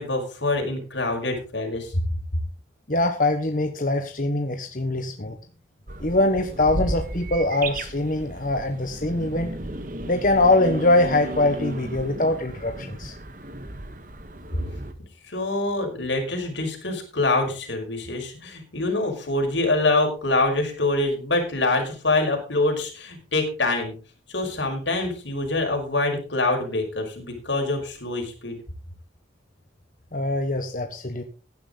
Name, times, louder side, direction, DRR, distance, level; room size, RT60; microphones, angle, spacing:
voice 1, 0.0-2.0 15.3-23.9 24.3-28.6, left 2 dB, 85° left, 2 dB, 5.6 m, -25 dB
voice 2, 2.9-5.4 6.0-9.5 10.1-13.1 30.1-31.2, left 2 dB, 45° left, 5 dB, 1.3 m, -23 dB
sound 1, 5.9-14.9, right 1 dB, 45° right, 1.5 m, -34 dB
16.0 x 10.5 x 4.0 m, 0.35 s
head